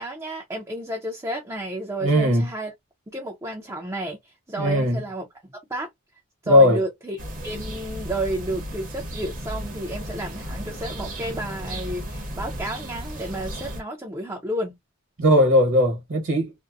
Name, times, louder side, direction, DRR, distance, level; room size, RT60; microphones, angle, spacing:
voice 1, 0.0-2.7 3.1-5.3 5.7-5.9 6.4-14.7, right 1 dB, 15° right, 0.5 m, -31 dB
voice 2, 2.0-2.5 4.6-5.0 6.5-6.8 15.2-16.5, left 1 dB, 60° right, 1.1 m, -18 dB
sound 1, 7.2-13.8, equal, 40° right, 0.8 m, -34 dB
2.6 x 2.1 x 2.3 m
head